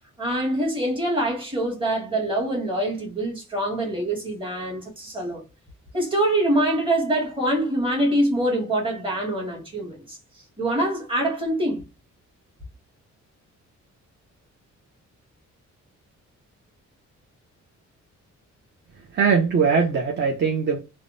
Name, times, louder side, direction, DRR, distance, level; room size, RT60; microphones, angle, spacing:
voice 1, 0.2-5.4 5.9-10.2 10.6-11.9, right 1 dB, 15° right, 1.4 m, -24 dB
voice 2, 18.9-20.8, right 5 dB, 40° right, 0.5 m, -21 dB
3.4 x 2.0 x 2.5 m
wide cardioid pair, 145°, 30 cm